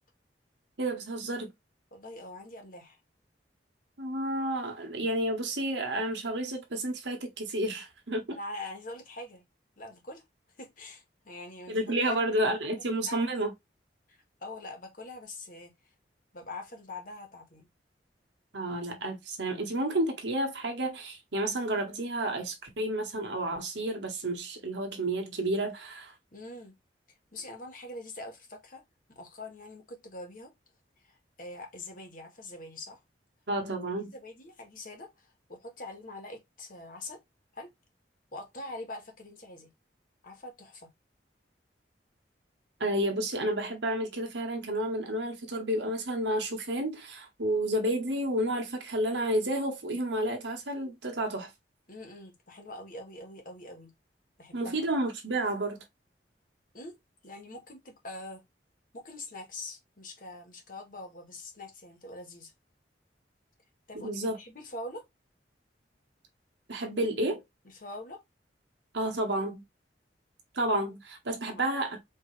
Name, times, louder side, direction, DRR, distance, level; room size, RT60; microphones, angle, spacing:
voice 1, 0.8-1.5 4.0-8.4 11.7-13.5 18.5-26.1 33.5-34.1 42.8-51.5 54.5-55.8 63.9-64.4 66.7-67.4 68.9-69.6 70.5-72.0, right 1 dB, 80° right, 1.4 m, -31 dB
voice 2, 1.9-3.0 8.3-9.4 9.8-10.2 10.6-12.5 13.1-13.2 14.1-15.7 16.3-17.7 26.3-26.7 27.3-28.8 29.1-30.5 31.0-33.0 34.1-37.2 37.5-37.7 38.3-39.7 40.2-40.9 51.9-53.9 54.4-54.9 56.7-57.0 57.2-58.4 58.9-62.5 63.9-65.1 67.6-68.2 71.4-71.6, left 2 dB, 50° left, 1.4 m, -44 dB
4.6 x 2.9 x 3.2 m
head